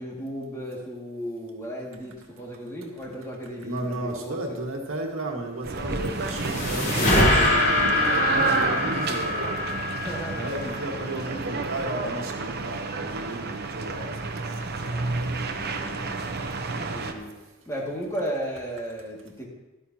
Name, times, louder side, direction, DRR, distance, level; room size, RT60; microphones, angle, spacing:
voice 1, 0.0-4.6 8.8-9.1 9.9-10.6 14.9-16.2 16.7-17.3 17.7-19.5, equal, 15° left, -3 dB, 2.1 m, -35 dB
voice 2, 3.6-9.6 10.3-14.1 15.1-15.3, right 1 dB, 85° right, 1 dB, 1.7 m, -34 dB
sound 1, 5.6-17.1, right 3 dB, 50° right, 0.9 m, -30 dB
sound 2, 5.8-11.2, left 1 dB, 45° left, 3.8 m, -24 dB
13.5 x 12.0 x 2.9 m, 1.1 s
head